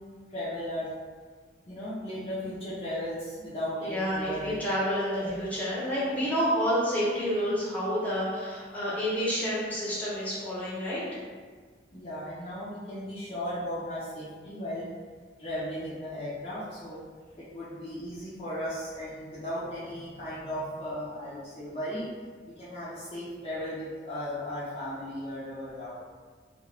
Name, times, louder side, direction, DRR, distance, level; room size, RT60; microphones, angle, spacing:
voice 1, 0.3-0.9 1.7-4.6 5.1-5.4 11.9-14.9 15.4-17.0 17.3-22.1 22.5-25.9, equal, 35° left, -10 dB, 0.7 m, -36 dB
voice 2, 3.8-11.0, equal, 10° left, -9 dB, 0.9 m, -29 dB
2.8 x 2.4 x 3.3 m, 1.5 s
head